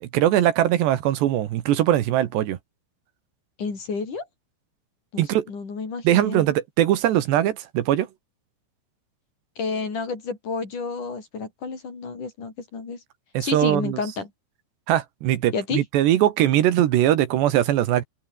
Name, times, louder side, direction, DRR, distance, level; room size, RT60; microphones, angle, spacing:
voice 1, 0.0-2.6 5.2-5.5 6.1-8.1 13.4-14.0 14.9-18.0, right 12 dB, 75° right, 3.5 m, -21 dB
voice 2, 3.6-4.3 5.1-6.4 9.6-13.0 13.4-14.3 15.5-15.8, left 4 dB, 45° left, 6.4 m, -30 dB
open air
omnidirectional pair, 5.2 m